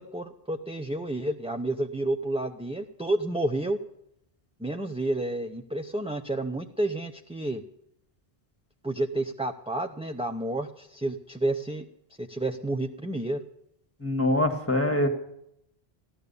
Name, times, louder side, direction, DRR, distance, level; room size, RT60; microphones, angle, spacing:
voice 1, 0.0-3.8 4.6-7.6 8.8-11.9 12.2-13.4, right 1 dB, 5° right, 5 dB, 0.6 m, -30 dB
voice 2, 14.0-15.1, left 1 dB, 15° left, 7 dB, 1.7 m, -24 dB
16.0 x 12.0 x 6.9 m, 0.76 s
omnidirectional pair, 1.0 m